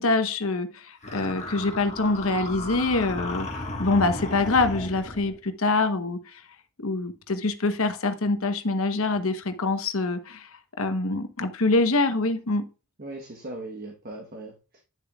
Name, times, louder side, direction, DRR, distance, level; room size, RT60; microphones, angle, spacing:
voice 1, 0.0-3.5 3.8-6.4 6.8-10.5 10.8-12.6, left 3 dB, 70° left, 8 dB, 1.0 m, -25 dB
sound 1, 1.0-5.4, left 2 dB, 30° left, 1.6 m, -35 dB
voice 2, 13.0-14.8, right 2 dB, 40° right, 2 dB, 1.2 m, -39 dB
10.0 x 6.9 x 2.4 m, 0.32 s
head